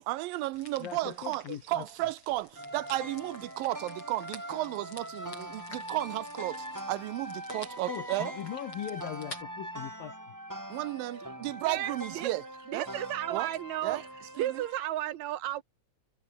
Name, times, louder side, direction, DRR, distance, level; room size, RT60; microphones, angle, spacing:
voice 1, 0.0-8.3 10.7-12.4 12.7-12.9 13.3-13.5 13.8-14.0 14.4-14.6, right 17 dB, 85° right, 2.3 m, -34 dB
sound 1, 0.5-9.4, left 3 dB, 35° left, 8.5 m, -51 dB
voice 2, 0.8-1.9 7.9-10.3, left 12 dB, 70° left, 3.0 m, -40 dB
sound 2, 2.6-14.9, equal, 5° right, 5.4 m, -42 dB
voice 3, 11.7-12.3 12.7-14.0 14.4-15.6, right 13 dB, 65° right, 2.0 m, -33 dB
omnidirectional pair, 4.2 m